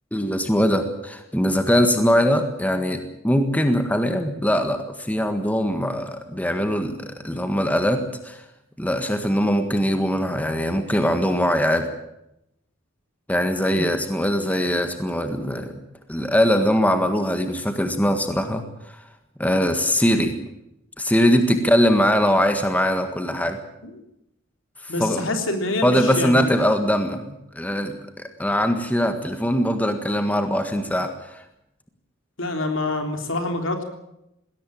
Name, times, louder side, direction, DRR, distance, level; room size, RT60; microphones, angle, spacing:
voice 1, 0.1-8.4 8.8-11.9 13.3-15.8 16.1-19.0 19.4-20.4 21.0-23.6 24.8-25.2 25.8-31.4, equal, 5° left, 7 dB, 1.6 m, -22 dB
voice 2, 24.9-26.5 32.4-33.8, left 2 dB, 65° left, 5 dB, 3.5 m, -26 dB
20.5 x 17.5 x 8.8 m, 0.84 s
head